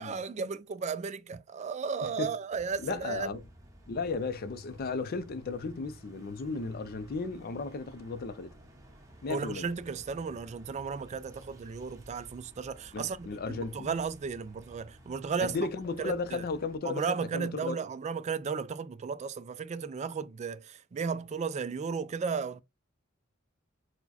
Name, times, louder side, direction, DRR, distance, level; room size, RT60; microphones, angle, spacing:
voice 1, 0.0-3.3 9.3-15.6 16.0-16.4 16.8-22.6, right 5 dB, 35° right, 0.3 m, -34 dB
sound 1, 2.5-16.8, right 1 dB, 15° right, 1.0 m, -54 dB
voice 2, 2.8-3.4 3.9-8.5 9.2-9.7 12.9-14.0 15.4-17.8, left 4 dB, 50° left, 0.4 m, -35 dB
4.6 x 2.1 x 4.1 m
head